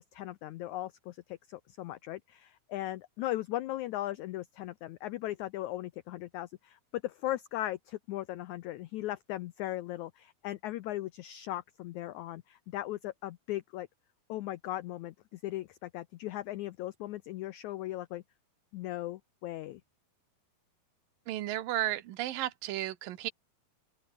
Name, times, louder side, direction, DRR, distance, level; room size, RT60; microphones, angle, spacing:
voice 1, 0.0-13.9 14.3-18.2 18.7-19.8, left 15 dB, 85° left, 1.7 m, -38 dB
voice 2, 21.3-23.3, right 14 dB, 75° right, 2.8 m, -33 dB
open air
omnidirectional pair, 4.2 m